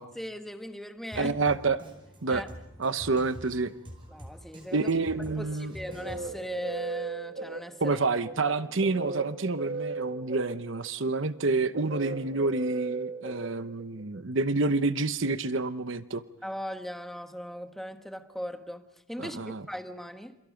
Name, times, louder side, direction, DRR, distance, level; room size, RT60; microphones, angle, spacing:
voice 1, 0.1-1.4 2.3-2.5 4.1-4.9 5.4-8.0 16.4-20.4, equal, ahead, 1.2 m, -39 dB
Drum kit, 1.1-6.6, equal, 25° right, 4.8 m, -46 dB
voice 2, 1.2-1.8 2.2-2.4 2.8-3.7 4.7-5.7 7.8-16.2 19.2-19.6, right 3 dB, 65° right, 0.9 m, -28 dB
sound 1, 5.5-14.2, right 3 dB, 45° right, 2.2 m, -37 dB
28.5 x 28.0 x 5.2 m
head